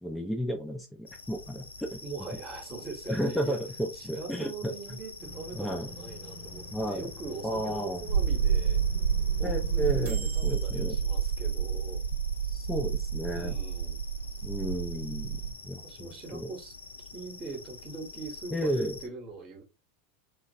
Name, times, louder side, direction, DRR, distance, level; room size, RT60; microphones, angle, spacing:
voice 1, 0.0-2.0 3.1-4.7 5.5-5.9 6.7-7.1 7.4-8.0 9.4-11.0 12.5-13.6 14.4-16.5 18.5-19.0, equal, 5° left, 0.5 m, -33 dB
sound 1, 1.1-19.1, left 4 dB, 80° left, 0.4 m, -46 dB
voice 2, 2.0-3.6 3.9-8.8 9.4-12.0 13.3-14.0 15.8-16.7 17.1-19.6, right 4 dB, 30° right, 1.0 m, -42 dB
sound 2, 5.2-11.6, right 1 dB, 55° right, 0.8 m, -45 dB
sound 3, 8.1-15.5, right 7 dB, 75° right, 0.3 m, -29 dB
2.9 x 2.3 x 2.6 m
figure-of-eight pair, 85°, 0 cm